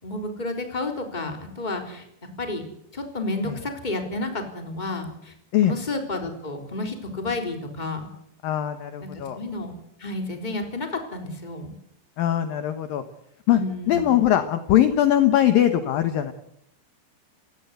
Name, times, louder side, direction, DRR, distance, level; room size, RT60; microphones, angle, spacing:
voice 1, 0.0-5.3 5.6-8.1 9.0-11.7 13.5-14.2, left 2 dB, 10° left, 5 dB, 3.2 m, -31 dB
voice 2, 8.4-9.4 12.2-13.0 13.5-13.6 13.9-16.3, left 11 dB, 65° left, 9 dB, 2.5 m, -21 dB
29.5 x 17.0 x 8.2 m, 0.77 s
omnidirectional pair, 5.1 m